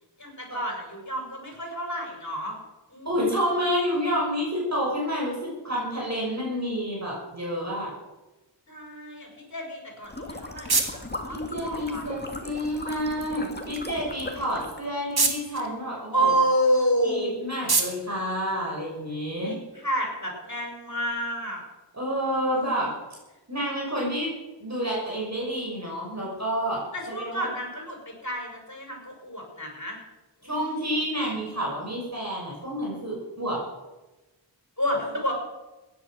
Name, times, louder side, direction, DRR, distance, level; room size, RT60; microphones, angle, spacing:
voice 1, 0.2-2.6 2.9-3.1 8.7-10.8 11.2-12.1 16.1-17.3 19.4-21.6 22.4-22.6 26.9-28.0 28.2-30.0 30.4-30.6 34.8-35.3, right 1 dB, 40° left, 0 dB, 6.4 m, -29 dB
voice 2, 3.0-7.9 11.3-16.3 17.0-19.6 21.9-22.9 23.5-24.3 24.6-27.5 30.4-33.6, equal, 35° right, -4 dB, 6.2 m, -29 dB
sound 1, 9.9-19.3, right 3 dB, 55° right, 2.1 m, -33 dB
sound 2, 10.0-14.9, left 2 dB, 20° left, 2.1 m, -38 dB
16.0 x 10.5 x 6.4 m, 1.1 s
wide cardioid pair, 60°, 45 cm